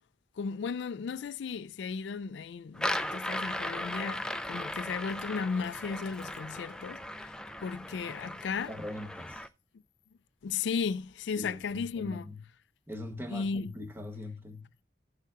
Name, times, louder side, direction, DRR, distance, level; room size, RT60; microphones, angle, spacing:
voice 1, 0.4-7.3 7.6-8.7 10.4-12.3 13.3-13.7, left 5 dB, 80° left, 0.4 m, -35 dB
sound 1, 2.7-9.5, left 1 dB, 5° left, 0.4 m, -37 dB
voice 2, 8.7-9.5 11.4-12.4 12.9-14.7, left 1 dB, 10° right, 1.0 m, -41 dB
15.5 x 6.5 x 2.5 m
head